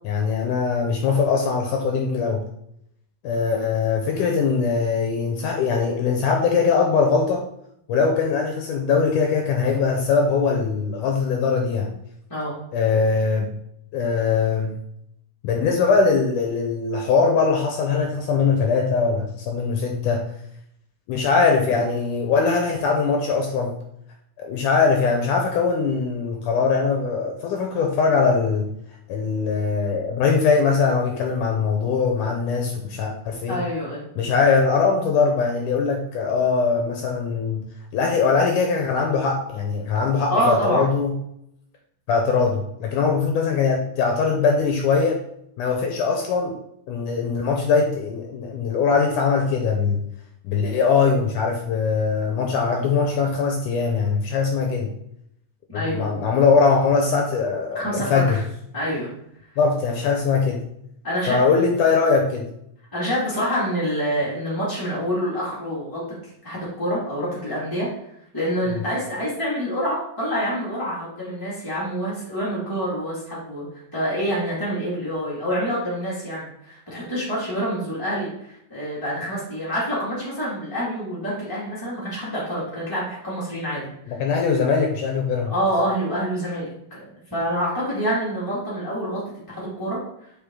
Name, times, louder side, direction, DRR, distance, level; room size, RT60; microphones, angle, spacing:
voice 1, 0.1-2.4 3.2-7.4 7.9-11.9 12.7-13.5 13.9-14.7 15.4-20.3 21.1-23.8 24.4-28.7 29.1-33.6 34.2-37.6 37.9-41.1 42.1-45.2 45.6-46.5 46.9-50.0 50.4-54.9 55.7-58.4 59.6-60.6 61.3-62.5 68.7-68.8 84.1-85.5, left 5 dB, 75° left, 2 dB, 2.1 m, -21 dB
voice 2, 33.5-34.1 40.3-40.9 55.7-56.1 57.7-58.4 58.7-59.1 61.0-61.4 62.9-67.9 68.3-73.7 73.9-84.2 85.4-87.0 87.3-89.2 89.5-90.0, equal, 10° left, -8 dB, 1.0 m, -26 dB
7.1 x 4.9 x 3.7 m, 0.75 s
omnidirectional pair, 4.0 m